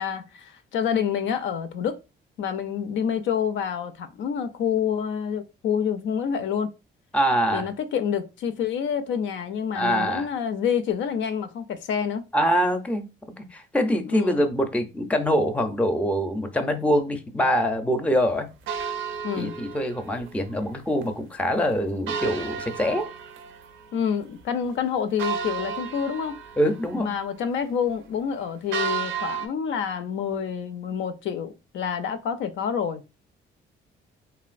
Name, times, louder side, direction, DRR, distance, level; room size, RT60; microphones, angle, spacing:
voice 1, 0.0-2.0 2.4-6.7 7.5-12.2 14.0-14.4 19.2-19.6 23.9-26.4 27.0-33.0, left 7 dB, 70° left, 0.4 m, -28 dB
voice 2, 7.1-7.7 9.7-10.3 12.3-13.1 13.4-18.5 19.4-23.1 26.6-27.1, equal, 5° left, 0.5 m, -24 dB
sound 1, 18.7-20.4 20.7-20.8 21.0-21.1 22.1-24.0 24.4-24.5 25.2-27.0 28.7-29.5, right 7 dB, 80° right, 0.5 m, -32 dB
3.1 x 2.5 x 2.4 m
cardioid pair, 90°, 20 cm